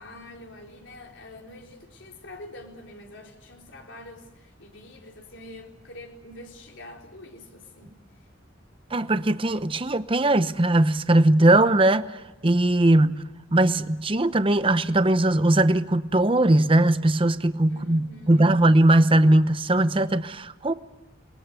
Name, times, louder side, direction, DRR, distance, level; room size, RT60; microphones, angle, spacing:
voice 1, 0.0-8.3 17.7-18.6, left 1 dB, 70° left, 4.2 m, -45 dB
voice 2, 8.9-12.1 12.4-13.2 13.5-20.7, right 1 dB, 25° right, 0.8 m, -20 dB
28.5 x 21.5 x 8.3 m
head